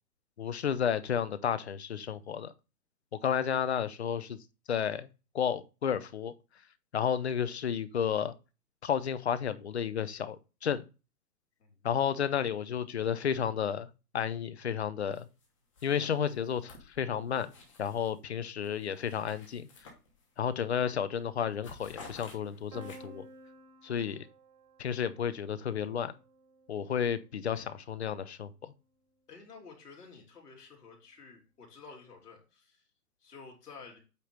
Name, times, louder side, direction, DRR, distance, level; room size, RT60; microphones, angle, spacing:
voice 1, 0.4-2.5 3.2-4.4 4.7-5.1 5.3-6.3 6.9-8.3 8.8-10.8 11.8-13.9 14.1-15.3 15.8-17.5 17.8-19.7 20.4-23.2 23.8-24.3 24.8-26.1 26.7-28.7, left 8 dB, 45° left, 0.6 m, -32 dB
sound 1, 15.1-15.5 15.7-18.2 18.6-20.5 20.9-21.1 21.4-23.3, left 3 dB, 20° left, 1.0 m, -53 dB
Piano, 22.7-28.5, right 2 dB, 20° right, 1.1 m, -55 dB
voice 2, 29.3-32.9 33.2-34.0, left 5 dB, 70° left, 3.2 m, -51 dB
8.3 x 3.0 x 5.2 m
hypercardioid pair, 170°, 48 cm